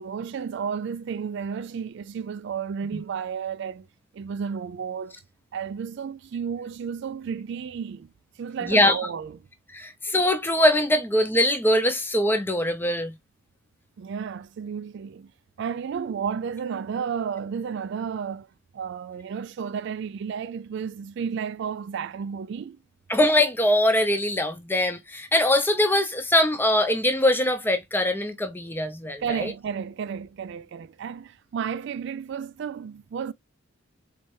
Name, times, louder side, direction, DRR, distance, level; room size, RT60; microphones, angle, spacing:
voice 1, 0.0-3.9 4.1-5.2 5.5-8.1 8.4-9.4 14.0-15.3 15.6-18.5 18.7-22.8 29.2-33.3, right 7 dB, 55° right, 0.3 m, -32 dB
voice 2, 8.6-9.0 9.7-13.1 23.1-29.5, left 1 dB, 10° left, 0.6 m, -22 dB
4.2 x 3.3 x 3.2 m
head